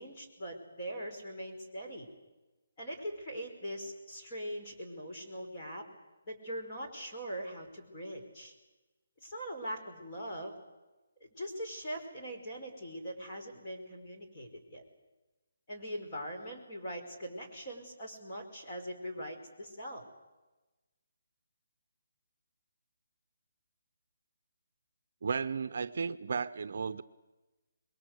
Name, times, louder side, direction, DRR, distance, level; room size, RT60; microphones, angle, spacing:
voice 1, 0.0-2.1 2.8-5.8 6.3-8.5 9.2-10.6 11.4-14.8 15.7-20.0, equal, 25° left, -1 dB, 5.0 m, -41 dB
voice 2, 25.2-27.0, right 5 dB, 50° right, 12 dB, 0.8 m, -34 dB
27.0 x 22.0 x 8.1 m, 1.1 s
hypercardioid pair, 175°, 0 cm